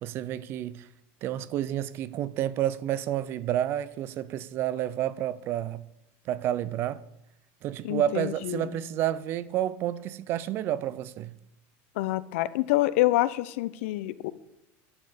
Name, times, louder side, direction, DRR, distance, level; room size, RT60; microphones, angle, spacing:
voice 1, 0.0-0.9 1.2-5.8 6.3-7.0 7.6-11.3, right 12 dB, 35° right, 0.5 m, -30 dB
voice 2, 7.8-8.7 12.0-14.3, left 17 dB, 80° left, 0.7 m, -27 dB
11.0 x 7.7 x 6.8 m
cardioid pair, 175°, 7 cm